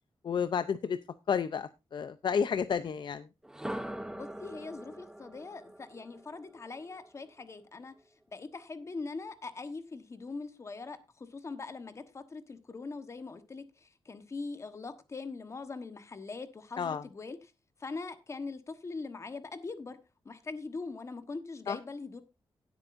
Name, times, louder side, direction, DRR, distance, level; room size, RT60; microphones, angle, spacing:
voice 1, 0.2-1.0 1.3-3.3 16.8-17.0 21.7-21.8, left 6 dB, 55° left, 0.6 m, -31 dB
sound 1, 3.4-7.4, right 1 dB, 5° right, 0.8 m, -43 dB
voice 2, 4.1-7.9 8.3-17.4 17.8-20.0 20.2-22.2, left 3 dB, 30° left, 1.2 m, -42 dB
17.0 x 8.2 x 2.6 m
wide cardioid pair, 155°, 9 cm